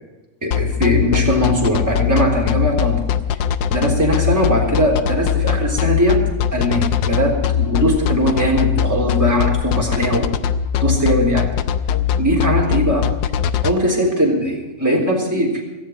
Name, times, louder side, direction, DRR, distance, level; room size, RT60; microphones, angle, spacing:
voice 1, 0.4-3.0 3.7-6.2 6.5-10.3 10.8-11.5 12.2-13.1 13.6-15.6, equal, 10° right, -3 dB, 3.7 m, -19 dB
sound 1, 0.5-13.7, left 9 dB, 85° left, 1.4 m, -20 dB
17.0 x 14.5 x 4.7 m, 1.1 s
omnidirectional pair, 1.9 m